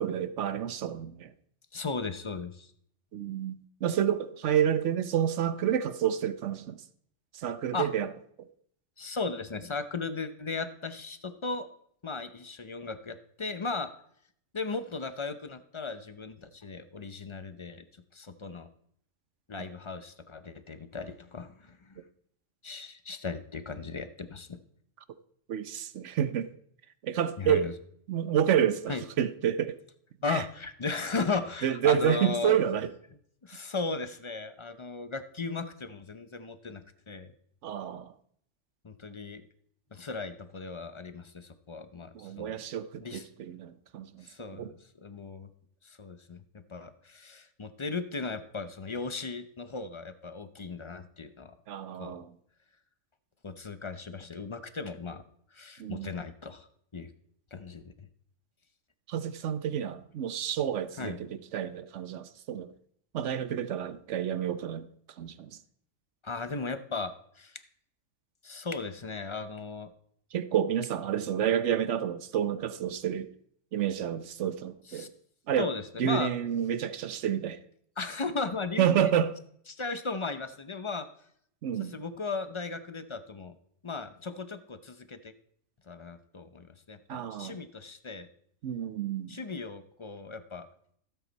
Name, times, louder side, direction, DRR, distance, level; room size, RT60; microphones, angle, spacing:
voice 1, 0.0-1.3 3.1-6.8 7.3-8.1 19.6-19.7 25.5-26.5 27.0-27.7 28.1-29.8 30.3-30.4 31.6-32.9 37.6-38.1 42.1-44.3 44.5-44.7 51.7-52.3 55.8-56.1 59.1-62.7 63.1-64.9 65.2-65.5 70.3-73.3 73.7-75.1 75.5-75.7 76.0-77.6 78.8-79.3 81.6-81.9 87.1-87.6 88.6-89.4, right 9 dB, 65° right, 1.0 m, -29 dB
voice 2, 1.7-2.7 7.7-7.9 9.0-11.7 12.0-13.9 14.5-17.8 18.1-18.7 19.5-22.0 22.6-24.6 27.4-27.7 28.9-29.0 30.2-32.6 33.4-37.3 38.8-39.4 39.9-42.6 43.0-43.3 44.2-45.5 45.8-46.4 46.7-51.5 51.9-52.2 53.4-55.2 55.5-56.7 56.9-57.1 57.5-58.1 61.0-61.2 66.2-67.6 68.4-69.9 74.9-75.1 75.6-76.3 78.0-79.1 79.7-81.1 81.8-83.6 83.8-85.3 85.9-88.3 89.3-90.7, left 4 dB, 30° left, 0.6 m, -36 dB
16.0 x 8.1 x 4.1 m
omnidirectional pair, 1.4 m